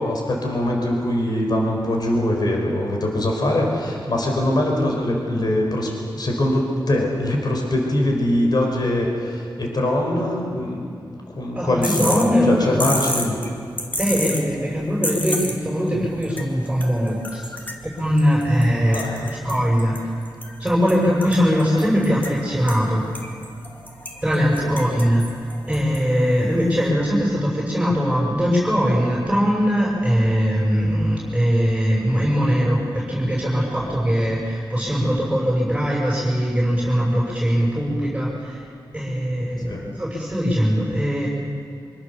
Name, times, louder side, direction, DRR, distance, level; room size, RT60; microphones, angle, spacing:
voice 1, 0.0-10.8 11.3-13.4 18.8-19.2 24.6-24.7 39.6-39.8, left 1 dB, 55° left, 1 dB, 4.6 m, -22 dB
voice 2, 11.5-12.9 14.0-17.4 17.8-20.0 20.6-23.1 24.2-25.3 25.7-38.6 38.9-41.3, equal, 5° right, -6 dB, 6.6 m, -21 dB
sound 1, 11.8-26.9, left 1 dB, 20° left, 2.6 m, -33 dB
25.0 x 24.5 x 7.0 m, 2.5 s
wide cardioid pair, 110°, 8 cm